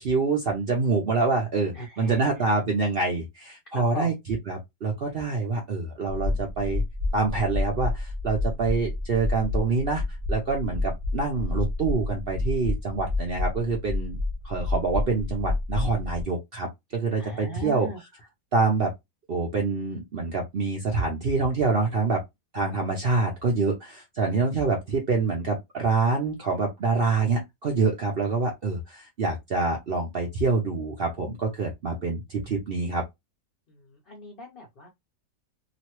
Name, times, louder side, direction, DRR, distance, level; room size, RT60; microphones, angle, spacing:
voice 1, 0.0-4.1 4.5-6.8 7.1-10.0 10.3-14.2 14.4-17.9 18.5-18.9 19.3-22.2 22.5-33.0, right 4 dB, 65° right, 0.5 m, -26 dB
voice 2, 1.7-2.5 3.7-4.1 17.2-18.0 33.7-34.9, left 1 dB, 65° left, 0.5 m, -38 dB
sound 1, 6.1-16.2, left 2 dB, 30° right, 0.7 m, -29 dB
2.9 x 2.5 x 2.9 m
omnidirectional pair, 1.9 m